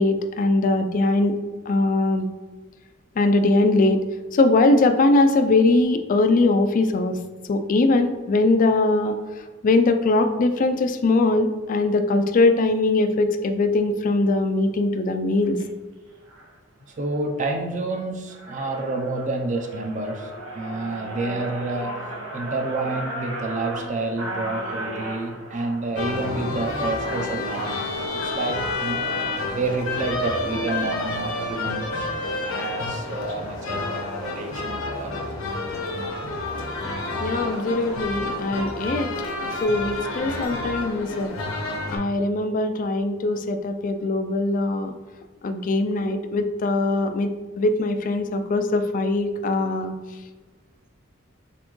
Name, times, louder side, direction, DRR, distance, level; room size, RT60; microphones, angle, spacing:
voice 1, 0.0-1.4 1.7-2.3 3.2-4.0 4.3-7.2 7.5-9.1 9.6-15.6 37.2-39.1 39.6-41.3 41.9-44.9 45.4-47.3 47.6-49.9, left 2 dB, 40° left, 8 dB, 0.3 m, -21 dB
sound 1, 15.4-15.6 16.3-16.5 17.0-17.5 17.9-18.0 18.2-27.7, right 1 dB, 80° right, 1.0 m, -36 dB
voice 2, 17.0-22.0 22.3-29.0 29.5-35.2, right 2 dB, 35° right, 2 dB, 0.5 m, -29 dB
sound 2, 26.0-42.0, left 2 dB, 90° left, 1.0 m, -29 dB
4.2 x 3.7 x 3.0 m, 1.3 s
head